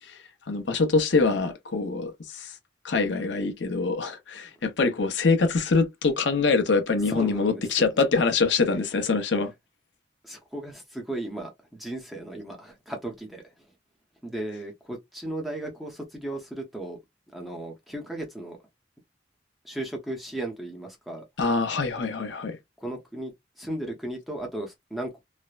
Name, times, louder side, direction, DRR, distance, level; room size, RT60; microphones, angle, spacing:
voice 1, 0.5-2.5 2.8-9.5 21.4-22.6, left 4 dB, 70° left, 0.7 m, -24 dB
voice 2, 7.1-7.9 10.2-13.4 14.2-17.0 17.3-18.6 19.6-21.2 22.8-25.1, right 1 dB, ahead, 0.7 m, -35 dB
3.2 x 2.0 x 2.4 m
head